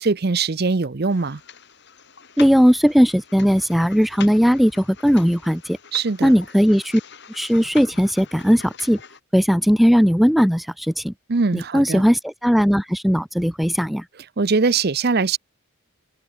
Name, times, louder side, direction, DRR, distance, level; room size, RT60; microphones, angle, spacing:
voice 1, 0.0-1.4 5.9-6.3 11.3-12.0 14.4-15.4, right 4 dB, 45° right, 0.6 m, -21 dB
sound 1, 1.1-9.2, left 7 dB, 50° left, 6.1 m, -43 dB
voice 2, 2.4-5.8 6.2-7.0 7.3-9.0 9.3-11.1 11.5-14.0, equal, ahead, 0.4 m, -18 dB
head